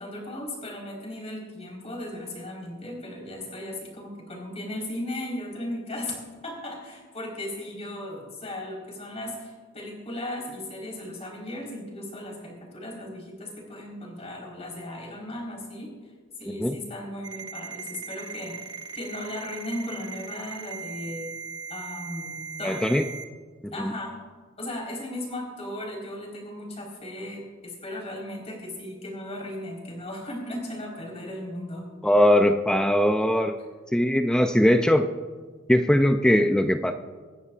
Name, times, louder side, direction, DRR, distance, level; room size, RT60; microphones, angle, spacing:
voice 1, 0.0-6.2 6.4-15.9 16.4-18.6 18.9-21.3 21.7-22.8 23.7-24.1 24.6-31.8, left 1 dB, 35° left, -1 dB, 4.3 m, -36 dB
voice 2, 16.5-16.8 22.6-23.1 23.6-23.9 32.0-33.5 33.9-35.1 35.7-36.9, equal, 5° left, 6 dB, 0.4 m, -21 dB
Ringtone, 17.2-23.2, right 5 dB, 20° right, 1.1 m, -38 dB
26.0 x 11.0 x 2.5 m, 1.5 s
head